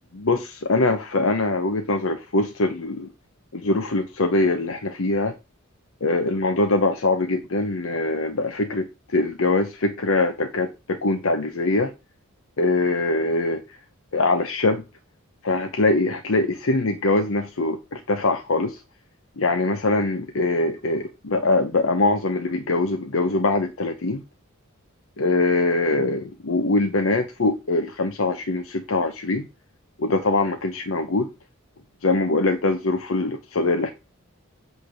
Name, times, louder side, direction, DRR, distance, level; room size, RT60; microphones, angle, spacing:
voice 1, 0.1-3.1 3.5-5.4 6.0-11.9 12.6-13.8 14.1-14.8 15.4-18.8 19.4-24.2 25.2-29.5 30.0-31.3 32.0-33.9, left 2 dB, 65° left, 0.7 m, -23 dB
8.2 x 3.4 x 6.3 m
head